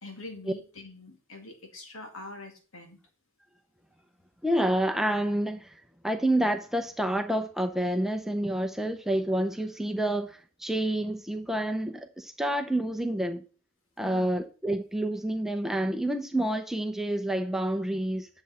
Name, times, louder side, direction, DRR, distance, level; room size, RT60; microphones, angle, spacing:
voice 1, 0.0-3.0 14.0-14.4, left 2 dB, 80° left, 2.4 m, -44 dB
voice 2, 4.4-5.7 6.0-13.4 14.0-18.3, right 1 dB, ahead, 0.7 m, -28 dB
10.0 x 7.0 x 4.3 m
head